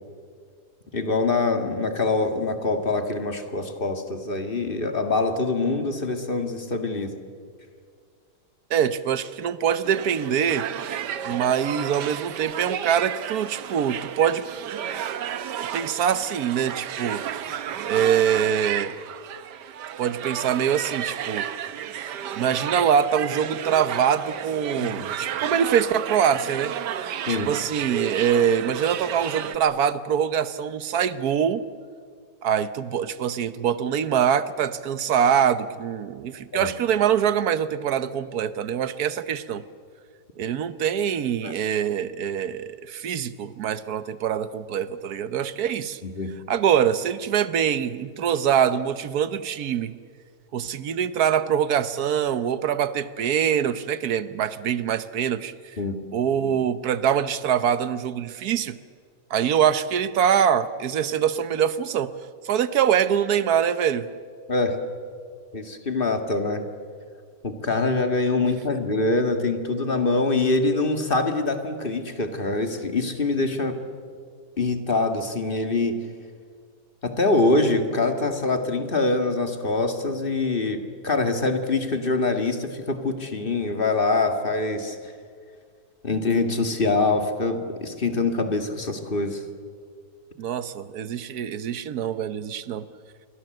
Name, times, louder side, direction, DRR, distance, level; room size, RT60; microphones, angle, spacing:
voice 1, 0.9-7.1 24.8-25.1 27.3-27.5 36.5-36.7 41.4-41.6 46.0-46.3 55.8-56.0 64.5-64.8 65.5-66.6 67.4-73.8 74.6-76.0 77.0-85.0 86.0-89.4, left 3 dB, 30° left, 7 dB, 2.1 m, -24 dB
voice 2, 8.7-10.7 11.3-14.5 15.6-17.2 17.8-18.9 20.0-21.5 22.3-31.7 32.4-39.6 40.4-46.0 46.5-49.9 50.5-55.8 56.1-58.8 59.3-62.1 62.4-64.1 90.4-92.9, right 8 dB, 65° right, 14 dB, 1.4 m, -24 dB
sound 1, 9.8-29.6, right 9 dB, 85° right, 1.5 m, -32 dB
27.0 x 23.0 x 7.8 m, 2.1 s
omnidirectional pair, 1.8 m